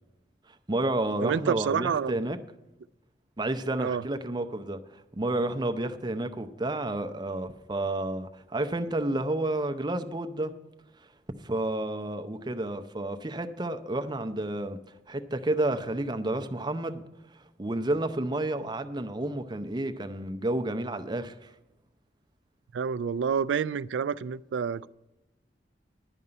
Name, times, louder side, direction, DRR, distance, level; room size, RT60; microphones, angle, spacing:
voice 1, 0.7-2.4 3.4-10.5 11.4-14.8 15.1-17.0 17.6-21.5, right 1 dB, 25° right, 0.6 m, -30 dB
voice 2, 1.2-2.2 3.8-4.0 22.7-24.9, right 6 dB, 85° right, 0.3 m, -28 dB
11.0 x 5.4 x 8.7 m
head